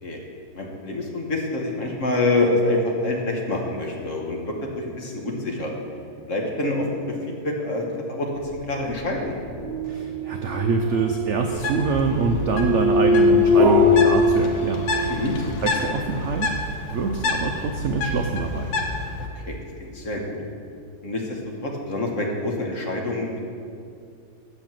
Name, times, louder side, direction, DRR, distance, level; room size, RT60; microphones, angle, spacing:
voice 1, 0.5-5.7 6.3-8.3 8.7-9.4 15.1-15.4 19.3-20.4 21.0-23.4, left 2 dB, 50° left, 0 dB, 1.4 m, -26 dB
sound 1, 9.1-15.2, left 2 dB, 40° right, 1.5 m, -21 dB
voice 2, 9.8-15.2 15.6-16.5 16.9-18.7, right 4 dB, 70° right, 4 dB, 0.7 m, -25 dB
Bird, 11.5-19.3, left 2 dB, 85° left, 1.6 m, -29 dB
8.1 x 6.8 x 7.4 m, 2.4 s
omnidirectional pair, 1.9 m